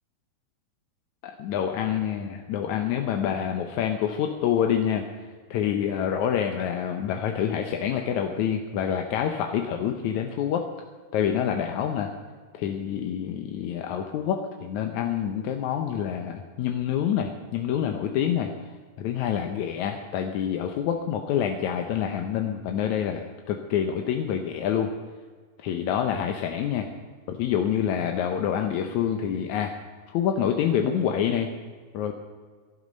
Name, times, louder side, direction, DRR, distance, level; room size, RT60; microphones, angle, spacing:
voice 1, 1.2-5.0 5.5-10.7 11.1-12.1 12.5-18.5 19.0-24.9 25.6-26.9 27.3-29.7 30.1-31.5 31.9-32.1, left 9 dB, 70° left, 4 dB, 1.9 m, -27 dB
18.0 x 11.5 x 5.3 m, 1.5 s
omnidirectional pair, 4.2 m